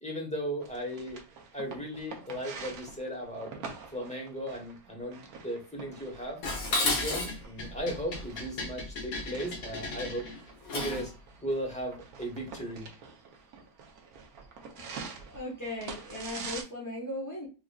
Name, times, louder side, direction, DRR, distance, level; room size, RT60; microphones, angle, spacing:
voice 1, 0.0-1.2 1.5-3.5 3.9-6.4 6.8-10.2 10.7-11.1 11.4-12.9, equal, 5° left, 1.0 m, -36 dB
sound 1, 0.6-16.6, right 5 dB, 70° right, 1.2 m, -46 dB
Dishes pots and pans, 6.4-11.1, left 2 dB, 65° left, 1.3 m, -33 dB
voice 2, 15.3-17.5, left 1 dB, 25° left, 0.3 m, -37 dB
4.8 x 2.5 x 2.3 m
omnidirectional pair, 1.7 m